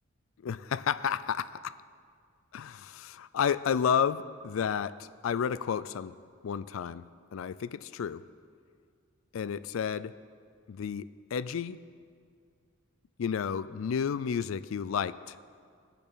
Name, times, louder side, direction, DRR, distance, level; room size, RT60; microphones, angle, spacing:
voice 1, 0.4-1.8 2.5-6.2 6.4-8.2 9.3-10.1 10.7-11.8 13.2-15.3, left 7 dB, 75° left, 16 dB, 0.4 m, -31 dB
19.5 x 6.9 x 4.0 m, 2.1 s
head